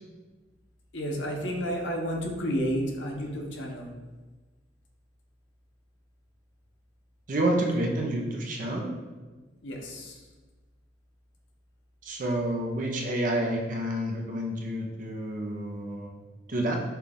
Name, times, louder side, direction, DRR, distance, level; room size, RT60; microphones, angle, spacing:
voice 1, 0.9-3.9 9.6-10.2, equal, 80° left, 1 dB, 0.8 m, -31 dB
voice 2, 7.3-8.9 12.0-16.1 16.5-16.8, right 1 dB, 45° right, 0 dB, 0.6 m, -29 dB
5.8 x 2.3 x 3.5 m, 1.3 s
head